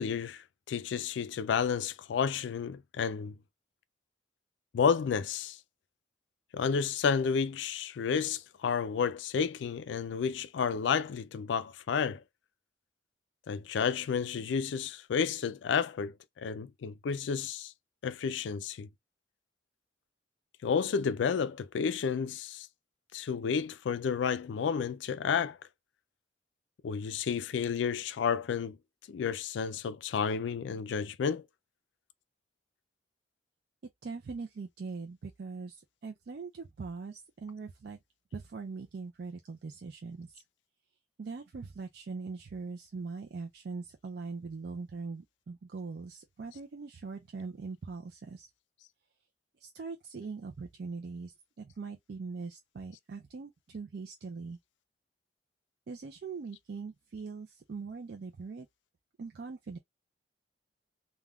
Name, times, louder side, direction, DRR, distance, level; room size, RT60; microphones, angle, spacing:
voice 1, 0.0-3.4 4.7-5.6 6.5-12.2 13.5-17.7 18.0-18.9 20.6-22.7 23.1-25.6 26.8-28.8 29.1-31.4, left 6 dB, 80° left, 0.3 m, -31 dB
voice 2, 34.0-38.0 38.3-40.4 41.2-48.5 49.6-54.6 55.9-58.7 59.2-59.8, right 4 dB, 55° right, 0.4 m, -41 dB
3.4 x 2.2 x 2.3 m
head